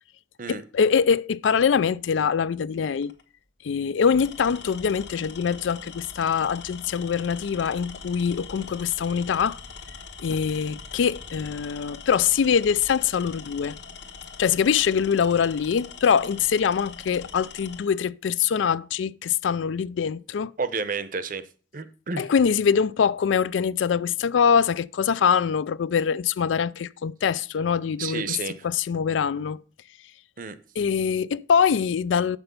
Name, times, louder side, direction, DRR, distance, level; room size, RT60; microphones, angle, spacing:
voice 1, 0.5-3.1 3.6-9.6 10.2-13.8 14.4-20.5 22.2-28.4 28.6-29.6 30.8-32.4, left 7 dB, 80° left, 0.4 m, -23 dB
Tools, 3.0-3.2 4.1-17.9, left 5 dB, 60° left, 1.3 m, -42 dB
voice 2, 20.6-21.4 21.7-22.3 28.0-28.6 30.4-30.6, right 4 dB, 45° right, 0.7 m, -30 dB
7.8 x 6.2 x 5.3 m
head